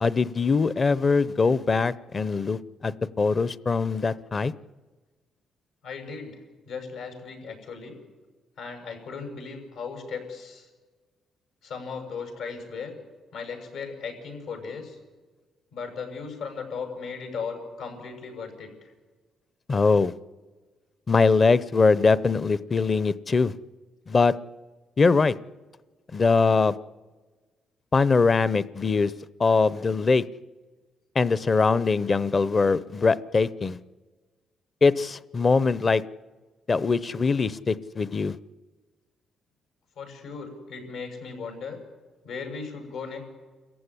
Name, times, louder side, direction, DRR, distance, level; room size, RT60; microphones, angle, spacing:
voice 1, 0.0-4.5 19.7-20.1 21.1-23.5 24.1-24.3 25.0-25.3 26.1-26.8 27.9-29.1 29.4-30.2 31.1-33.8 34.8-36.0 36.7-38.4, left 4 dB, 35° left, 18 dB, 0.7 m, -22 dB
voice 2, 5.8-6.4 6.7-8.0 8.6-10.7 11.6-12.9 13.3-15.0 15.7-18.7 40.0-41.8 42.2-43.2, left 5 dB, 85° left, 3 dB, 6.6 m, -37 dB
27.0 x 15.0 x 10.0 m, 1.3 s
cardioid pair, 90°, 0 cm